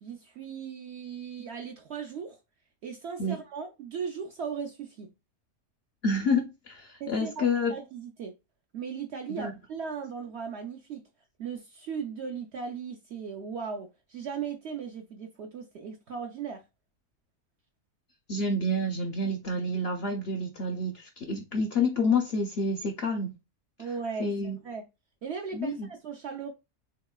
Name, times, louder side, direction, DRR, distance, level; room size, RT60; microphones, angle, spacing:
voice 1, 0.0-2.4 2.8-5.1 7.0-8.3 8.7-11.0 11.4-16.6 23.8-24.8 25.2-26.5, right 6 dB, 65° right, 0.7 m, -37 dB
voice 2, 6.0-7.7 9.4-9.5 18.3-23.3 24.2-24.6 25.5-25.9, left 2 dB, 65° left, 0.6 m, -28 dB
3.8 x 2.9 x 2.2 m
omnidirectional pair, 1.5 m